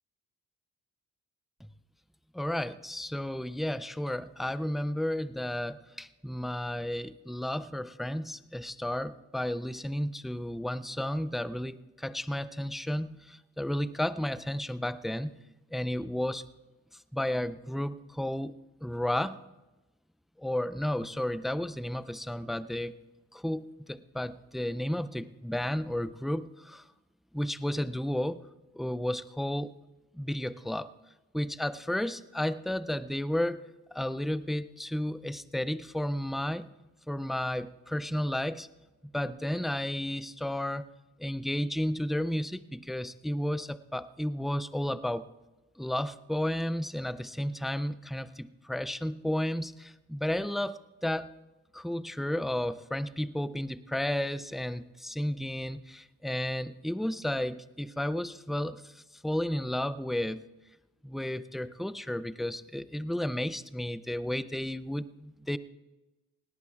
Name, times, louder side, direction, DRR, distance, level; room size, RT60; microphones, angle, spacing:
voice 1, 2.3-15.3 15.7-16.4 17.1-18.5 18.8-19.4 20.4-22.9 23.3-26.9 27.3-28.4 28.7-29.7 30.1-30.9 31.3-33.7 33.9-36.7 37.1-38.7 39.1-40.8 41.2-45.2 45.8-51.3 51.7-60.4 61.0-65.6, left 1 dB, ahead, 16 dB, 0.3 m, -32 dB
19.5 x 18.0 x 2.4 m, 1.1 s
cardioid pair, 90°, 30 cm